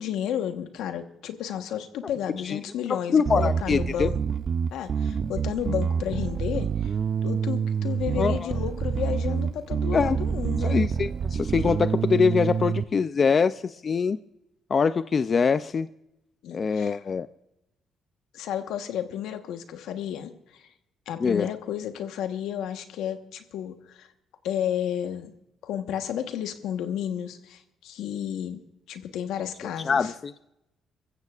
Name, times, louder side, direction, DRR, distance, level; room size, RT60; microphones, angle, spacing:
voice 1, 0.0-4.2 4.7-6.9 7.2-10.9 16.4-17.0 18.3-20.6 21.1-24.1 24.4-25.3 25.6-28.6 28.9-30.1, left 9 dB, 85° left, 1.2 m, -32 dB
voice 2, 3.1-4.1 8.2-8.5 9.9-10.2 10.6-14.2 14.7-15.9 16.5-17.3 21.2-21.5 29.9-30.3, left 5 dB, 40° left, 0.4 m, -23 dB
Bass guitar, 3.3-12.8, right 6 dB, 50° right, 0.5 m, -27 dB
25.0 x 15.0 x 2.4 m
cardioid pair, 90°, 0 cm